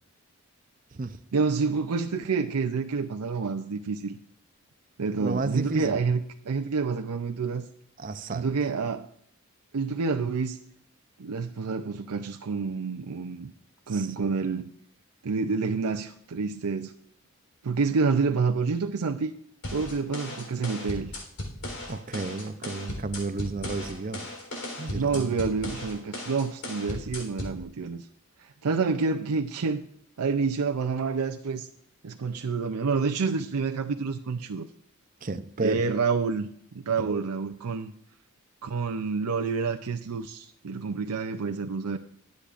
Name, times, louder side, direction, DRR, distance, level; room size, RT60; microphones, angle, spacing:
voice 1, 1.3-4.2 5.0-7.7 8.3-9.1 9.7-10.6 11.2-13.5 13.9-14.7 15.2-16.9 17.6-19.3 19.7-21.1 24.9-28.1 28.4-29.9 30.2-31.7 32.0-34.7 35.6-37.9 38.6-42.0, right 4 dB, 90° right, 6 dB, 0.6 m, -28 dB
voice 2, 5.2-6.0 8.0-8.5 13.9-14.3 21.9-24.3 24.8-25.4 35.2-35.8 37.0-37.2, right 3 dB, 35° right, 10 dB, 0.6 m, -32 dB
sound 1, 19.6-27.6, left 1 dB, 90° left, 3.8 m, -37 dB
21.5 x 8.5 x 2.5 m, 0.66 s
head